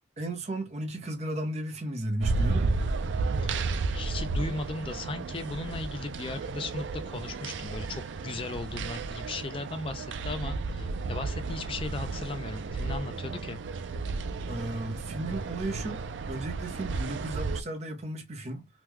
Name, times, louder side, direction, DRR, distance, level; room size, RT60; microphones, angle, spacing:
voice 1, 0.2-2.8 14.5-16.0 16.3-18.7, right 1 dB, 35° right, 0.6 m, -34 dB
sound 1, 2.2-17.6, right 3 dB, 75° right, 0.4 m, -33 dB
voice 2, 3.9-13.6, left 3 dB, 30° left, 0.3 m, -37 dB
3.0 x 2.2 x 3.5 m
head